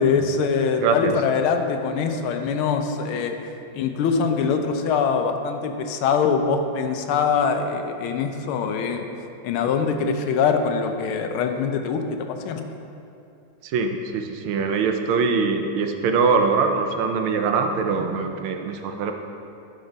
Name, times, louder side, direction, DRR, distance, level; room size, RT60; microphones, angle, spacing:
voice 1, 0.0-3.4 3.7-9.1 9.4-12.0 12.4-12.6, left 5 dB, 80° left, 6 dB, 1.6 m, -23 dB
voice 2, 0.8-1.1 13.6-19.1, right 5 dB, 75° right, 5 dB, 1.5 m, -23 dB
12.0 x 5.3 x 5.1 m, 2.7 s
omnidirectional pair, 2.3 m